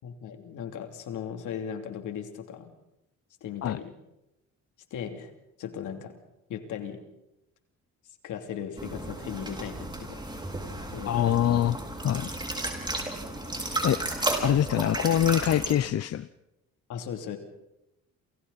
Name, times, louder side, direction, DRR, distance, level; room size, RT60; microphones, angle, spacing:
voice 1, 0.0-2.7 3.4-3.9 4.9-5.3 5.6-6.1 6.5-7.0 8.2-10.2 10.9-11.8 16.9-17.4, left 8 dB, 80° left, 5 dB, 3.5 m, -37 dB
sound 1, 8.8-15.7, right 1 dB, 15° right, 5.7 m, -33 dB
voice 2, 11.0-11.8 12.0-12.3 13.8-14.0 14.4-16.3, left 11 dB, 55° left, 14 dB, 0.8 m, -24 dB
28.5 x 28.5 x 4.3 m, 0.89 s
cardioid pair, 90°, 30 cm